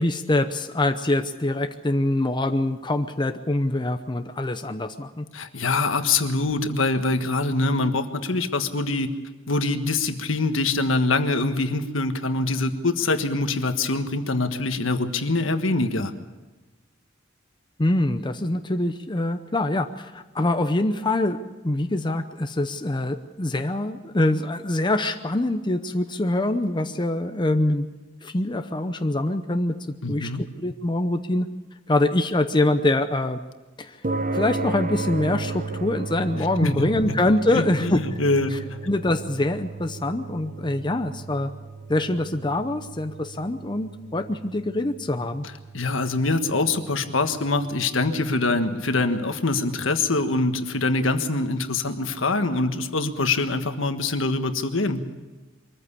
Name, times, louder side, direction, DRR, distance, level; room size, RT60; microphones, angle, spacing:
voice 1, 0.0-5.3 17.8-27.9 28.2-29.7 30.1-30.3 30.6-31.5 31.9-33.4 33.8-34.0 34.3-38.0 38.5-38.6 38.9-41.5 41.9-45.5, left 1 dB, 25° left, 7 dB, 0.8 m, -24 dB
voice 2, 5.3-9.1 9.5-16.1 30.0-30.4 36.6-36.7 37.1-37.2 37.5-38.8 45.7-55.0, left 3 dB, 75° left, 8 dB, 1.5 m, -24 dB
sound 1, 34.0-50.6, right 3 dB, 40° right, 1.0 m, -35 dB
23.5 x 14.5 x 8.4 m, 1.2 s
head